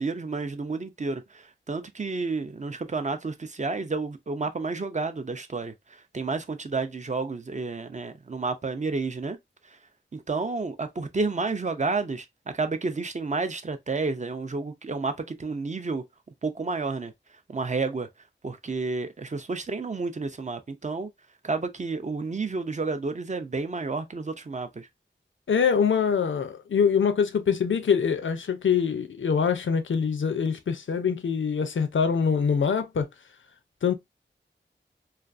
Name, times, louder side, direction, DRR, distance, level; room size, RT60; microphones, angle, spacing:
voice 1, 0.0-9.4 9.7-9.8 10.1-16.0 16.4-17.1 17.5-18.1 18.4-21.1 21.4-24.9, right 3 dB, 40° right, 0.4 m, -30 dB
voice 2, 25.5-33.1 33.8-33.9, left 6 dB, 90° left, 0.4 m, -24 dB
2.4 x 2.3 x 2.4 m
wide cardioid pair, 65°, 19 cm